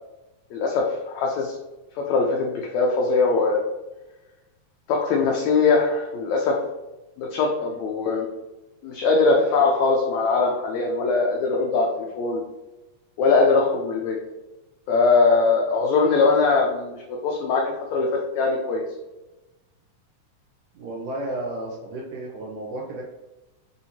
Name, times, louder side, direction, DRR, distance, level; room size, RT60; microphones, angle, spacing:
voice 1, 0.5-1.5 2.0-3.6 4.9-6.6 7.2-8.3 8.8-12.4 13.2-14.2 14.9-18.8, left 4 dB, 90° left, 0 dB, 1.6 m, -21 dB
voice 2, 20.7-23.0, right 1 dB, 75° right, -2 dB, 2.1 m, -32 dB
4.9 x 2.8 x 2.7 m, 1.0 s
omnidirectional pair, 3.8 m